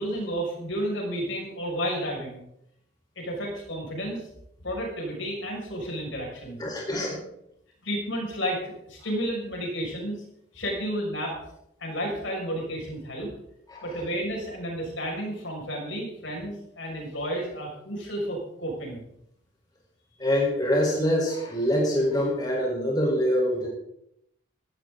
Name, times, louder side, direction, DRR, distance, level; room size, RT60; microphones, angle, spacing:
voice 1, 0.0-2.4 3.2-4.2 4.6-6.6 7.8-10.2 10.5-11.3 11.8-13.3 13.8-19.0, equal, 70° left, 0 dB, 6.3 m, -31 dB
voice 2, 6.6-7.2 13.7-13.9 20.2-23.7, equal, 20° left, -2 dB, 4.6 m, -25 dB
18.0 x 14.0 x 4.0 m, 0.77 s
head